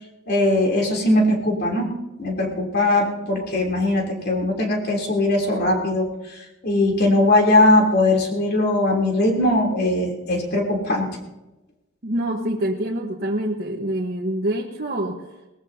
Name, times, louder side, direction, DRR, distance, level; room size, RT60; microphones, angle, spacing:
voice 1, 0.3-1.9 2.2-11.1, left 1 dB, 55° left, 0 dB, 3.3 m, -20 dB
voice 2, 12.0-15.2, right 1 dB, 50° right, -2 dB, 1.3 m, -26 dB
21.5 x 18.5 x 2.8 m, 0.99 s
head